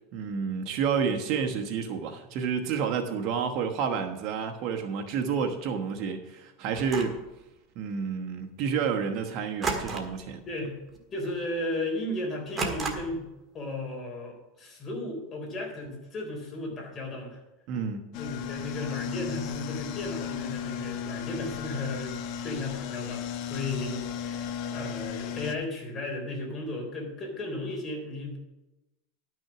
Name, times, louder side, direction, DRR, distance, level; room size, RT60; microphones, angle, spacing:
voice 1, 0.1-7.2 7.8-10.4 17.7-18.1, right 6 dB, 50° right, 4 dB, 1.2 m, -30 dB
sound 1, 6.8-7.3 9.6-10.3 10.6-10.9 11.3-11.4 12.6-13.3, right 3 dB, 20° right, 1.6 m, -32 dB
voice 2, 11.1-13.2 13.5-17.4 18.1-22.1 22.4-28.4, left 2 dB, 25° left, 0 dB, 3.9 m, -35 dB
sound 2, 18.1-25.6, left 8 dB, 55° left, 0.9 m, -35 dB
11.5 x 6.2 x 6.0 m, 0.98 s
supercardioid pair, 130°, 0 cm